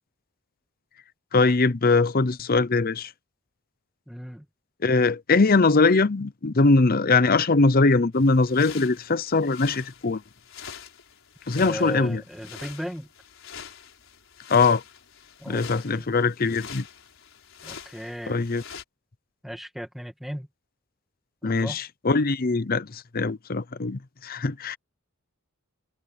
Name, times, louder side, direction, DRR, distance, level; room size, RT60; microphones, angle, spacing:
voice 1, 1.3-3.1 4.8-10.2 11.5-12.2 14.5-14.8 15.5-16.9 18.3-18.6 21.4-24.8, left 3 dB, 45° left, 0.7 m, -21 dB
voice 2, 4.1-4.5 11.6-13.1 15.4-16.1 17.6-18.4 19.4-20.5 21.4-21.8, equal, ahead, 2.2 m, -36 dB
sound 1, 8.1-18.8, left 7 dB, 65° left, 5.6 m, -45 dB
head